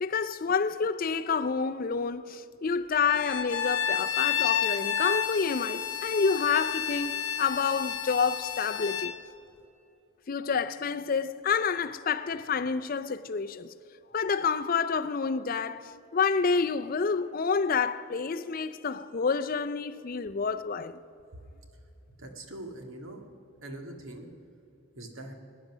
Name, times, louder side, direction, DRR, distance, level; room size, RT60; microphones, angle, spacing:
voice 1, 0.0-9.1 10.3-13.7 14.1-21.0, left 5 dB, 40° left, 0.4 m, -28 dB
Bowed string instrument, 3.1-9.2, left 8 dB, 70° left, 1.0 m, -30 dB
voice 2, 22.1-23.3 23.6-24.3 25.0-25.3, right 1 dB, 70° right, 1.9 m, -42 dB
21.5 x 10.0 x 6.1 m
head